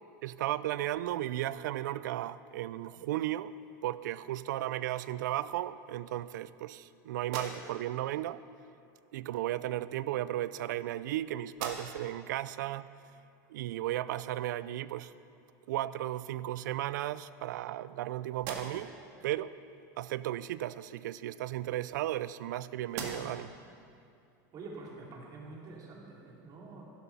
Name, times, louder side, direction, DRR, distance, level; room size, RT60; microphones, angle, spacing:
voice 1, 0.2-3.5 3.8-8.4 9.1-12.9 13.5-15.1 15.7-19.0 19.2-19.5 20.0-23.5, right 14 dB, 85° right, 16 dB, 0.4 m, -35 dB
sound 1, 7.2-8.0 9.2-9.3 10.3-11.1 11.5-12.2 12.7-12.8 15.5-15.6 16.0-16.7 17.3-18.0 18.3-19.0 21.0-22.5 22.9-23.5, right 4 dB, 65° right, 1.9 m, -45 dB
voice 2, 24.5-26.8, right 3 dB, 40° right, -2 dB, 2.8 m, -46 dB
12.0 x 11.0 x 5.6 m, 2.5 s
supercardioid pair, 120°, 10 cm